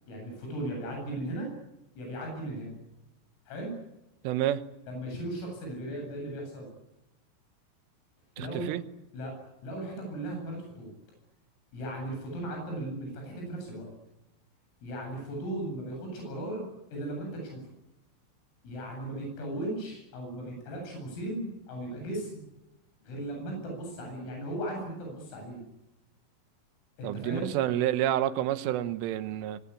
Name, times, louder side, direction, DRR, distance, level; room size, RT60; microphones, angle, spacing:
voice 1, 0.1-1.5 2.0-2.7 3.5-3.7 4.9-6.7 8.4-8.7 9.1-9.3 9.6-10.9 11.7-13.9 14.8-17.6 18.6-22.4 23.0-25.6 27.0-27.5, right 1 dB, 75° left, 1 dB, 11.0 m, -37 dB
voice 2, 4.2-4.6 8.4-8.8 27.0-29.6, right 12 dB, 75° right, 12 dB, 3.5 m, -29 dB
25.5 x 24.5 x 8.6 m, 0.90 s
omnidirectional pair, 6.0 m